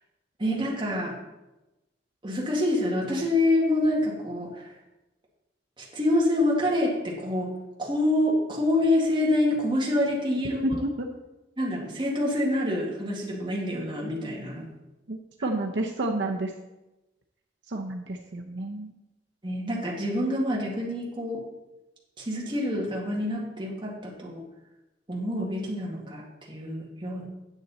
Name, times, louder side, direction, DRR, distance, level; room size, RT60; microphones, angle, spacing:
voice 1, 0.4-1.1 2.2-4.6 5.8-7.5 7.8-10.8 11.6-14.7 19.4-21.4 22.2-24.4 25.1-27.3, left 1 dB, 25° right, -3 dB, 2.1 m, -26 dB
voice 2, 10.6-11.2 15.1-16.5 17.7-18.9, right 1 dB, 65° right, 2 dB, 0.7 m, -30 dB
9.9 x 7.7 x 4.1 m, 1.0 s
head